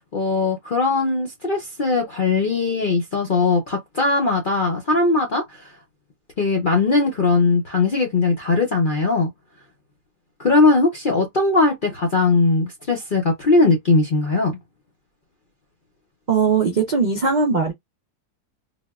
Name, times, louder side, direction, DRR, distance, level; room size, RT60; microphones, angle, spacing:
voice 1, 0.1-5.7 6.4-9.3 10.4-14.6, left 3 dB, 55° left, 0.5 m, -19 dB
voice 2, 16.3-17.7, right 5 dB, 75° right, 0.4 m, -19 dB
3.9 x 2.1 x 2.3 m
omnidirectional pair, 1.8 m